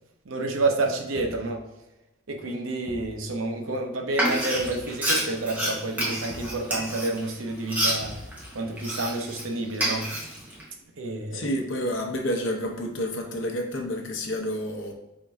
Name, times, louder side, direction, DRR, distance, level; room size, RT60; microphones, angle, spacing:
voice 1, 0.3-1.6 2.3-8.1 8.5-10.1 11.0-11.5, right 2 dB, 80° right, 2 dB, 0.7 m, -29 dB
Thump thud, 1.1-1.6 2.9-3.2 4.6-4.9 6.3-6.6 8.0-8.6, left 1 dB, 35° left, 0.4 m, -43 dB
Frying (food), 4.1-9.4 9.7-10.6, right 1 dB, 10° right, 0.9 m, -28 dB
voice 2, 11.3-14.9, equal, 70° left, 2 dB, 0.8 m, -29 dB
3.7 x 2.6 x 4.5 m, 0.96 s
head